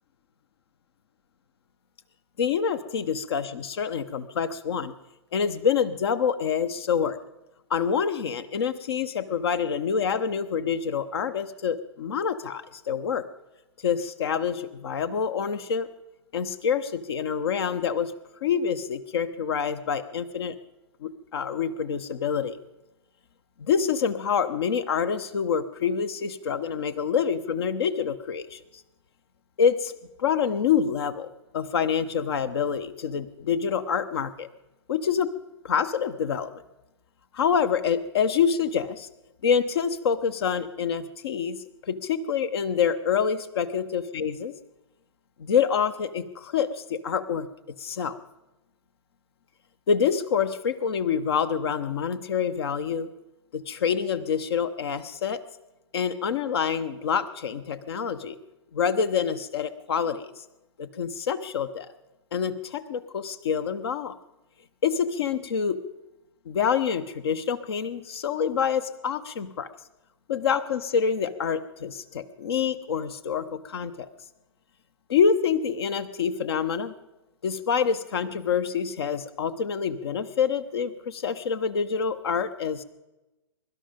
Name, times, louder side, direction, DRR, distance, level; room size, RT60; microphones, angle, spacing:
voice 1, 2.4-4.9 5.3-7.2 7.7-13.2 13.8-15.9 16.3-18.1 18.4-20.6 21.0-22.6 23.6-28.6 29.6-29.9 30.2-31.3 31.5-34.5 34.9-35.3 35.6-36.5 37.3-39.1 39.4-44.5 45.4-47.5 47.8-48.2 49.9-53.1 53.5-55.4 55.9-58.4 58.7-60.3 60.8-61.9 62.3-64.1 64.8-65.8 66.5-69.7 70.3-74.1 75.1-76.9 77.4-82.8, left 7 dB, 55° left, 12 dB, 1.0 m, -26 dB
22.5 x 12.0 x 5.2 m, 1.0 s
figure-of-eight pair, 115°, 15 cm